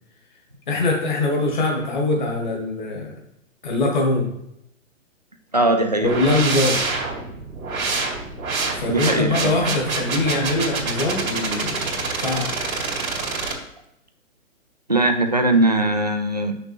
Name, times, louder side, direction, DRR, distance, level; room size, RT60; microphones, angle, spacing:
voice 1, 0.7-3.1 3.6-4.3 6.0-6.8 8.7-12.5, left 2 dB, 35° left, 0 dB, 1.7 m, -23 dB
voice 2, 5.5-6.1 8.9-9.5 14.9-16.5, right 2 dB, 35° right, 5 dB, 0.4 m, -20 dB
sound 1, 6.0-13.5, right 3 dB, 90° right, 2.2 m, -26 dB
6.3 x 6.0 x 4.6 m, 0.80 s
hypercardioid pair, 180°, 40 cm